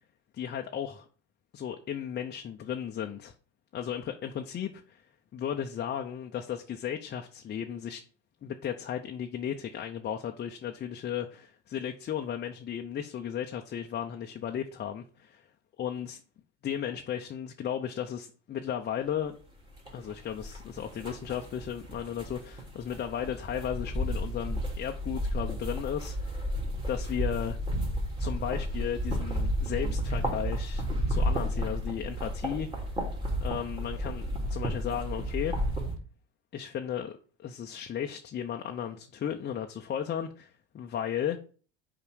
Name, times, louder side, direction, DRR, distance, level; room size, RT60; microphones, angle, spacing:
voice 1, 0.3-1.1 1.5-3.3 3.7-5.0 5.3-8.0 8.4-15.5 15.8-16.2 16.6-19.4 19.9-26.4 26.9-27.6 28.2-32.7 33.4-35.6 36.5-41.4, left 9 dB, 30° left, 0.7 m, -35 dB
sound 1, 19.8-35.9, equal, 15° right, 2.6 m, -32 dB
5.6 x 4.8 x 6.3 m
supercardioid pair, 100°, 33 cm